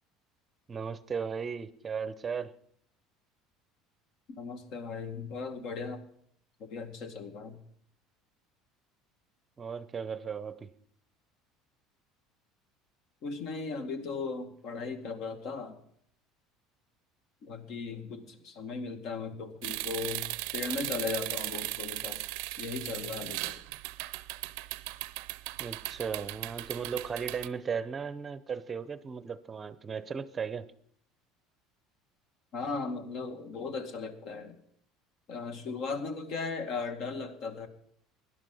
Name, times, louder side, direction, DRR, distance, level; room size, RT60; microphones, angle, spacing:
voice 1, 0.7-2.5 9.6-10.7 25.6-30.7, right 6 dB, 25° right, 0.7 m, -36 dB
voice 2, 4.4-6.0 6.6-7.6 13.2-15.8 17.4-22.2 22.6-23.6 32.5-34.6 35.3-37.7, left 4 dB, 60° left, 1.9 m, -37 dB
sound 1, 19.6-27.5, right 21 dB, 80° right, 0.6 m, -37 dB
17.0 x 11.0 x 5.5 m
supercardioid pair, 125°, 0 cm